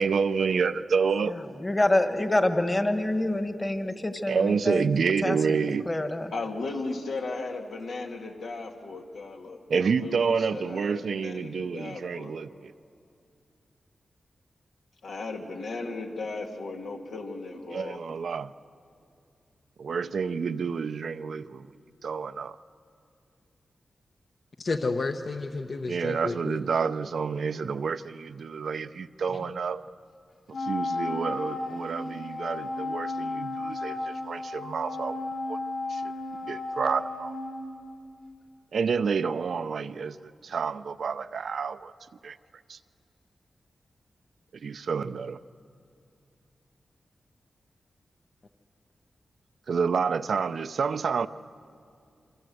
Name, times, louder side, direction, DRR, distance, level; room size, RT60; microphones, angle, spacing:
voice 1, 0.0-1.4 4.3-5.8 9.7-12.7 17.7-18.5 19.8-21.7 22.0-22.6 25.9-29.8 30.5-35.6 35.9-36.0 36.4-37.3 38.7-41.9 42.2-42.4 42.7-42.8 44.6-45.4 49.7-51.3, right 5 dB, 70° right, 0.6 m, -29 dB
voice 2, 1.2-4.9 5.2-6.3, left 1 dB, 20° left, 1.5 m, -27 dB
voice 3, 6.3-12.3 15.0-18.0, left 3 dB, 85° left, 2.4 m, -36 dB
voice 4, 24.6-26.6 29.3-29.5, left 3 dB, 50° left, 0.9 m, -31 dB
Wind instrument woodwind instrument, 30.5-38.2, left 2 dB, 65° left, 3.8 m, -34 dB
27.0 x 25.0 x 7.8 m
wide cardioid pair, 105°, 0 cm